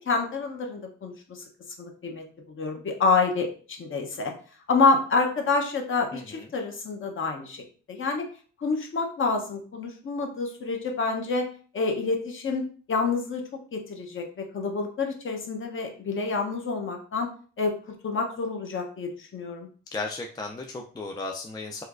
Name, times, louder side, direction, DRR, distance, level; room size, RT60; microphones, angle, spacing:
voice 1, 0.0-1.4 1.8-4.3 4.7-7.6 7.9-8.3 8.6-11.5 11.7-12.6 12.9-13.4 13.7-17.3 17.6-19.7, left 4 dB, 45° left, 3 dB, 0.8 m, -27 dB
voice 2, 6.1-6.5 19.9-21.8, left 3 dB, 15° left, 1 dB, 0.4 m, -35 dB
4.3 x 2.3 x 2.4 m, 0.41 s
cardioid pair, 90°, 30 cm